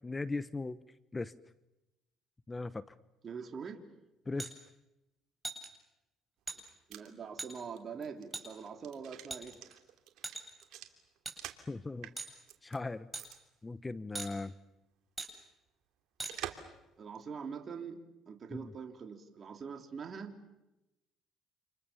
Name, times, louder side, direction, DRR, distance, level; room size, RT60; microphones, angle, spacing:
voice 1, 0.0-0.8 1.1-1.3 2.5-2.8 4.3-4.5 11.7-12.1 12.6-13.1 13.6-14.5 18.5-18.7, left 3 dB, 20° left, 15 dB, 1.0 m, -38 dB
voice 2, 3.2-3.8 6.9-9.6 17.0-18.0 18.3-20.4, right 6 dB, 45° right, 4 dB, 3.5 m, -43 dB
sound 1, 4.4-4.5 5.4-5.7 6.5-6.6 7.4-7.5 8.3-8.4 9.3-9.7 10.2-10.6 11.2-11.4 12.2-12.3 13.1-13.2 14.1-14.3 15.2-15.3 16.2-16.3, right 3 dB, 20° right, 7.8 m, -40 dB
sound 2, 6.5-11.7 12.0-12.8 13.2-13.4 13.7-13.8 16.3-16.8 17.2-17.3, right 12 dB, 75° right, 3.1 m, -47 dB
29.5 x 28.0 x 7.1 m, 0.95 s
supercardioid pair, 80°, 0 cm